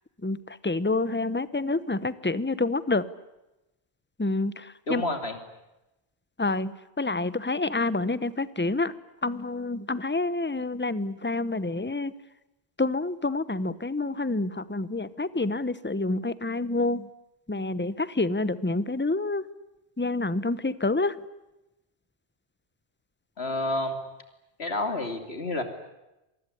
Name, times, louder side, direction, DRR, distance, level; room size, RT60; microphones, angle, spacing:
voice 1, 0.2-3.0 4.2-5.0 6.4-8.9 9.2-12.1 12.8-17.1 17.5-19.4 20.0-21.2, left 2 dB, 10° left, 16 dB, 0.8 m, -28 dB
voice 2, 4.9-5.4 23.4-24.0 24.6-25.6, left 2 dB, 70° left, 7 dB, 3.3 m, -29 dB
26.0 x 20.0 x 10.0 m, 0.96 s
omnidirectional pair, 1.1 m